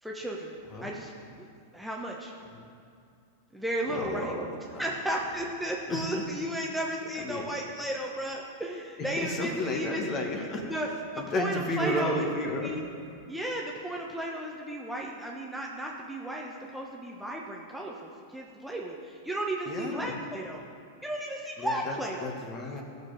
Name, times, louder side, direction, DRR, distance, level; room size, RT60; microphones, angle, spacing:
voice 1, 0.0-0.6 0.8-1.5 1.7-2.3 3.5-4.3 4.8-10.1 10.7-10.9 11.1-12.3 12.6-12.8 13.3-20.6 21.0-22.3, right 1 dB, 5° right, -2 dB, 1.2 m, -34 dB
voice 2, 3.9-4.5 4.7-5.0 5.9-6.3 7.2-7.5 9.0-10.6 11.2-12.8 19.7-20.2 21.6-22.8, left 1 dB, 35° left, 1 dB, 2.1 m, -33 dB
16.0 x 6.9 x 5.3 m, 2.3 s
hypercardioid pair, 105°, 0 cm